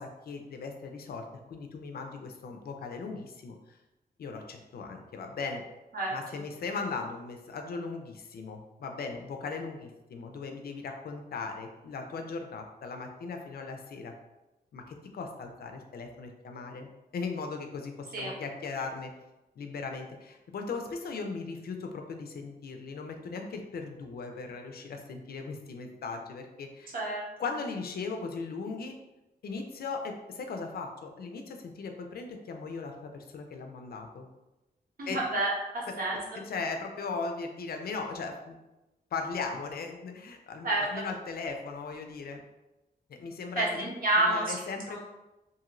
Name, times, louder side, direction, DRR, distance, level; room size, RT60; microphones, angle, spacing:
voice 1, 0.0-3.8 4.2-5.6 6.1-14.1 14.7-19.1 19.6-26.9 27.4-28.9 29.4-34.3 35.1-35.2 35.9-38.6 39.1-42.4 43.1-43.9 44.2-45.0, left 4 dB, 70° left, 4 dB, 0.4 m, -38 dB
voice 2, 5.9-6.4 18.1-18.3 26.9-27.2 35.0-36.2 40.6-41.0 43.6-44.5 44.9-45.0, right 2 dB, 60° right, -4 dB, 0.9 m, -29 dB
2.6 x 2.5 x 2.9 m, 1.0 s
wide cardioid pair, 135°, 16 cm